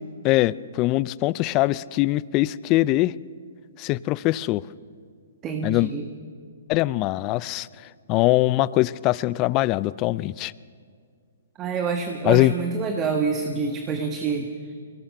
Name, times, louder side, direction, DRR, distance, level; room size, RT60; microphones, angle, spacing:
voice 1, 0.2-3.1 3.8-4.7 5.6-5.9 6.7-7.7 8.1-10.5 12.2-12.5, left 18 dB, 30° left, 19 dB, 0.4 m, -22 dB
voice 2, 5.4-6.0 11.6-14.5, right 5 dB, 20° right, 4 dB, 1.4 m, -27 dB
23.0 x 17.5 x 6.6 m, 2.1 s
hypercardioid pair, 140°, 0 cm